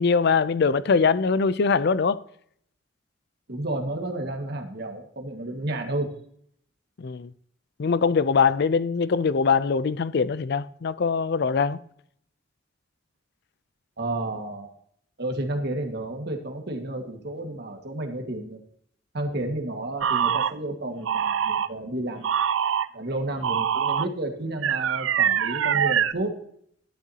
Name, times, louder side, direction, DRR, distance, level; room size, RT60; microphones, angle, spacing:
voice 1, 0.0-2.2 7.0-7.3 7.8-11.8, left 5 dB, 55° left, 0.4 m, -22 dB
voice 2, 3.5-6.1 14.0-14.7 15.2-18.6 19.1-22.3 22.9-26.3, right 1 dB, 60° right, 1.8 m, -31 dB
sound 1, 20.0-20.5 21.1-21.7 22.2-22.9 23.4-24.1 24.6-26.1, right 8 dB, 80° right, 0.4 m, -24 dB
12.0 x 10.0 x 2.8 m
head